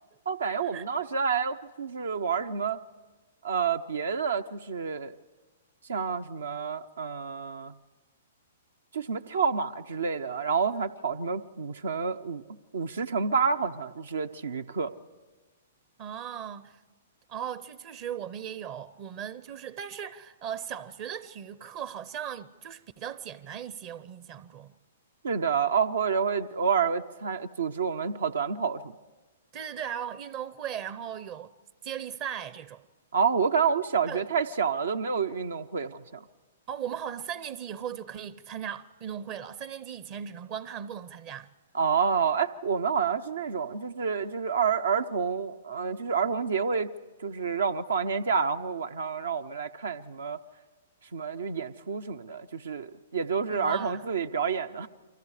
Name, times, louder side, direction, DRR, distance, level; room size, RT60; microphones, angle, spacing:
voice 1, 0.3-2.8 3.4-5.1 5.9-7.7 8.9-12.4 12.7-14.9 25.2-28.8 33.1-36.2 41.7-46.9 47.2-50.4 51.1-52.9 53.1-54.9, right 6 dB, 75° right, 0.8 m, -28 dB
voice 2, 16.0-16.8 17.3-24.7 29.5-31.5 31.8-32.8 34.1-34.2 36.7-41.5 53.5-54.0, right 9 dB, 40° right, 0.7 m, -38 dB
29.0 x 24.0 x 5.0 m
hypercardioid pair, 120°, 0 cm